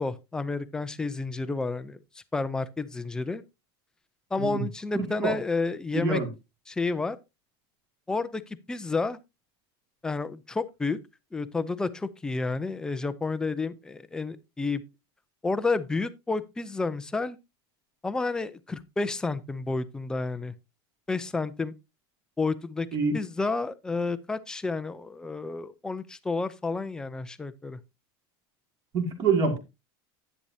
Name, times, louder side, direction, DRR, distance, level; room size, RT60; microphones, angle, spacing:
voice 1, 0.0-2.0 2.3-3.4 4.3-6.2 6.7-7.2 8.1-9.2 10.0-11.0 11.3-14.8 15.4-17.4 18.0-20.5 21.1-21.7 22.4-22.9 23.1-27.8, left 3 dB, 5° left, 0.4 m, -30 dB
voice 2, 5.9-6.3 22.9-23.1 28.9-29.6, right 4 dB, 30° right, 2.0 m, -25 dB
10.5 x 9.7 x 2.7 m
supercardioid pair, 175°, 13 cm